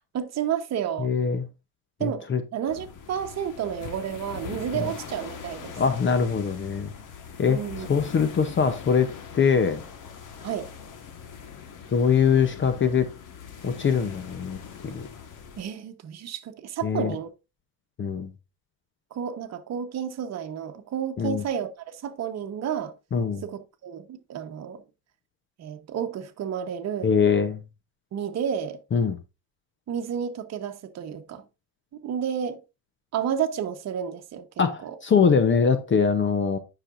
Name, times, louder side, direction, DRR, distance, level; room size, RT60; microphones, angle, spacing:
voice 1, 0.1-1.1 2.0-2.2 2.5-5.8 7.5-7.9 10.4-10.7 15.6-17.3 19.1-22.9 23.4-24.8 25.6-27.2 28.1-28.8 29.9-31.4 31.9-32.6 33.1-34.5 34.8-34.9, right 8 dB, 45° right, 1.0 m, -31 dB
voice 2, 1.0-1.5 2.0-2.4 4.7-4.9 5.8-6.9 7.4-7.6 7.9-9.8 11.9-13.1 13.6-14.6 14.8-15.1 16.8-17.1 18.0-18.3 21.2-21.4 23.1-23.4 27.0-27.6 28.9-29.2 34.6-36.6, left 6 dB, 30° left, 0.7 m, -23 dB
sound 1, 2.7-15.6, left 7 dB, 55° left, 1.5 m, -42 dB
9.7 x 5.9 x 2.5 m
cardioid pair, 125°, 37 cm